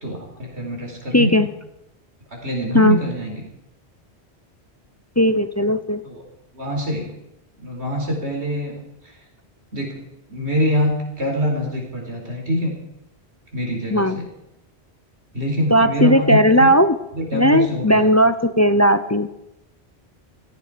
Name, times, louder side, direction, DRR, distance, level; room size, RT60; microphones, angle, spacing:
voice 1, 0.0-1.5 2.3-3.4 6.0-6.2 6.5-7.1 7.6-9.1 9.7-9.9 10.3-12.8 13.5-14.2 15.3-16.7 17.1-18.1, equal, 85° right, 0 dB, 4.7 m, -24 dB
voice 2, 1.1-1.5 2.7-3.0 5.2-6.0 13.9-14.2 15.7-17.0 17.3-19.3, equal, 20° left, 11 dB, 0.5 m, -16 dB
17.5 x 15.0 x 5.1 m, 0.86 s
omnidirectional pair, 1.1 m